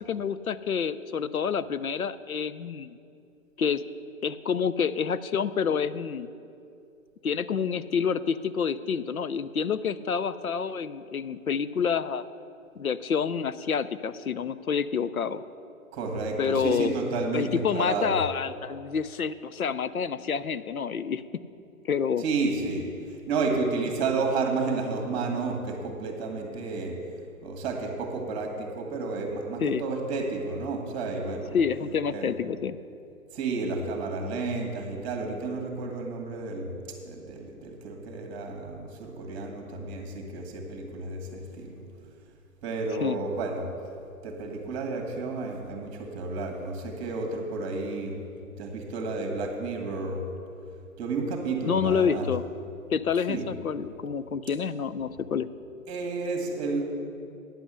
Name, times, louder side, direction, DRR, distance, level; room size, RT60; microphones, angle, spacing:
voice 1, 0.0-3.0 3.6-3.8 4.2-6.3 7.2-12.2 12.8-15.4 16.4-17.0 17.3-21.4 21.8-22.2 29.6-29.8 31.5-32.8 43.0-43.2 51.7-52.5 52.9-55.5, left 6 dB, 80° left, 14 dB, 0.6 m, -28 dB
voice 2, 15.9-18.2 22.2-27.0 27.4-31.6 32.1-32.3 33.3-36.8 37.1-41.8 42.6-43.7 44.2-48.2 48.6-50.2 51.0-52.3 53.3-53.5 55.9-56.8, right 3 dB, 25° right, 2 dB, 1.7 m, -31 dB
9.9 x 7.9 x 6.3 m, 2.5 s
figure-of-eight pair, 125°, 42 cm